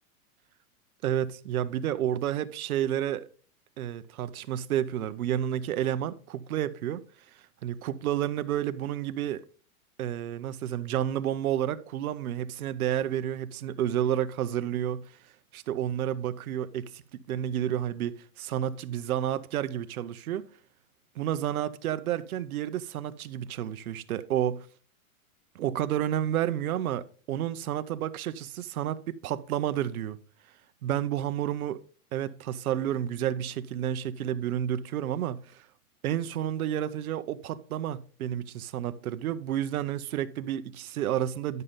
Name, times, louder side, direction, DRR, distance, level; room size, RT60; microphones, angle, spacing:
voice 1, 1.0-3.3 3.8-7.0 7.6-9.4 10.0-15.1 15.5-20.5 21.2-24.7 25.5-30.2 30.8-31.8 32.1-35.6 36.0-41.6, right 11 dB, 75° right, 0.9 m, -30 dB
10.5 x 6.6 x 3.8 m
hypercardioid pair, 155°, 43 cm